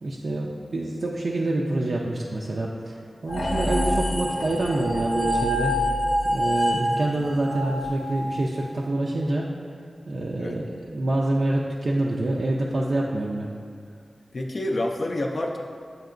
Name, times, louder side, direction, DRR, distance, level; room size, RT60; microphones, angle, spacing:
voice 1, 0.0-5.8 6.2-9.5 10.1-13.5, right 2 dB, 65° right, -3 dB, 0.3 m, -26 dB
sound 1, 3.3-8.7, equal, 85° left, 0.6 m, -26 dB
voice 2, 14.3-15.6, left 1 dB, 55° left, 1 dB, 0.3 m, -28 dB
7.7 x 2.8 x 2.4 m, 2.1 s
wide cardioid pair, 85°, 0 cm